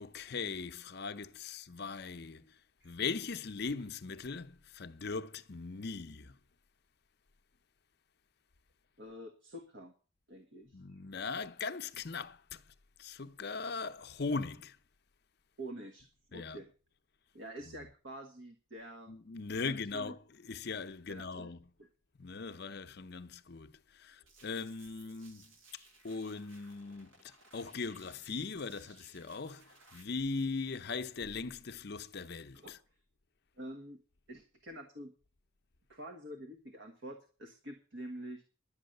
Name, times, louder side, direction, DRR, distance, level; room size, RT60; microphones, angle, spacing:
voice 1, 0.0-2.5 2.8-6.4 10.7-12.6 13.0-14.8 16.3-16.6 19.1-21.6 22.2-32.8, left 4 dB, 55° left, 0.6 m, -40 dB
voice 2, 9.0-9.9 10.3-10.8 15.6-16.7 17.3-19.1 19.6-20.1 21.1-21.5 21.8-21.9 24.2-24.3 32.5-32.8 33.6-34.0 34.3-35.1 35.9-38.4, right 1 dB, 60° right, 1.4 m, -47 dB
sound 1, 24.3-30.0, right 3 dB, 75° right, 2.1 m, -61 dB
11.0 x 8.8 x 6.6 m
head